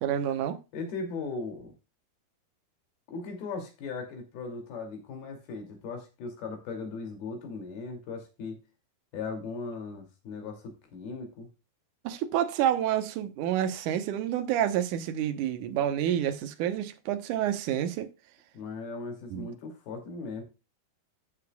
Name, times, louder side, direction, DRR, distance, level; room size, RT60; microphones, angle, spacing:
voice 1, 0.0-0.6 12.0-18.1 19.3-19.5, right 10 dB, 70° right, 2.0 m, -28 dB
voice 2, 0.7-1.7 3.1-8.6 9.1-11.5 18.5-20.4, left 4 dB, 70° left, 4.5 m, -38 dB
14.5 x 6.7 x 2.3 m
omnidirectional pair, 4.7 m